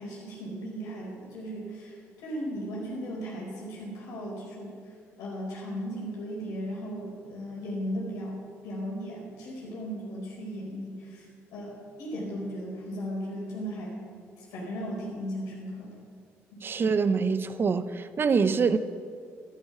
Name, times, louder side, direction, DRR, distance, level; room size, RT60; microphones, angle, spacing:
voice 1, 0.0-4.8 5.2-14.0 14.4-16.0 16.5-16.7, equal, 85° left, 4.6 m, -36 dB
voice 2, 16.6-18.8, right 5 dB, 40° right, 0.8 m, -25 dB
12.5 x 12.5 x 5.9 m
supercardioid pair, 75°, 6 cm